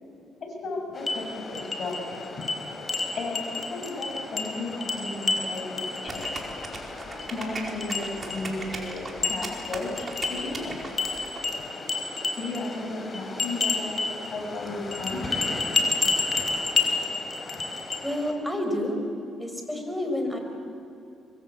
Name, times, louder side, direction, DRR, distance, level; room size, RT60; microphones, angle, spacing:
voice 1, 0.6-2.2 3.1-6.3 7.3-10.8 12.4-15.2, left 2 dB, 55° left, 1 dB, 7.3 m, -34 dB
sound 1, 0.9-18.3, left 3 dB, 35° left, 4.3 m, -31 dB
sound 2, 6.1-11.4, right 3 dB, 35° right, 4.6 m, -38 dB
voice 2, 18.0-19.0 19.4-20.4, left 1 dB, 5° left, 4 dB, 5.0 m, -29 dB
25.0 x 22.5 x 8.4 m, 2.7 s
cardioid pair, 90°, 0 cm